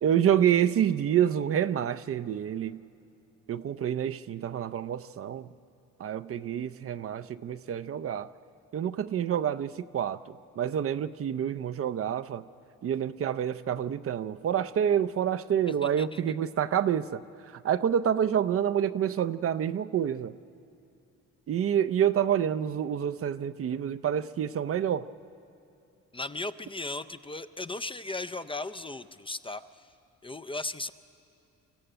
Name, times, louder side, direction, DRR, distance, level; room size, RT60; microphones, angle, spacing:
voice 1, 0.0-2.8 3.5-5.5 6.0-8.3 8.7-10.2 10.6-12.4 12.8-17.2 17.6-20.3 21.5-25.1, right 9 dB, 50° right, 13 dB, 0.6 m, -27 dB
voice 2, 15.8-16.2 26.1-29.9 30.2-30.9, left 2 dB, 20° left, 9 dB, 0.5 m, -36 dB
24.5 x 14.5 x 9.0 m, 2.6 s
cardioid pair, 90°, 30 cm